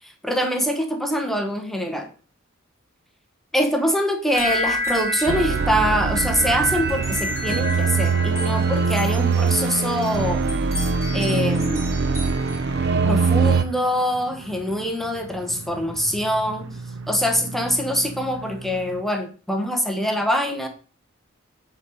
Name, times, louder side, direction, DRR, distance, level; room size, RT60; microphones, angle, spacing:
voice 1, 0.0-2.1 3.5-10.5 11.1-11.9 13.0-16.7 17.1-20.7, equal, ahead, 0.9 m, -24 dB
sound 1, 4.3-12.9, equal, 15° right, 2.7 m, -31 dB
sound 2, 5.3-13.6, right 4 dB, 55° right, 0.5 m, -22 dB
sound 3, 11.4-19.0, right 2 dB, 75° right, 0.8 m, -39 dB
8.2 x 3.9 x 5.6 m
head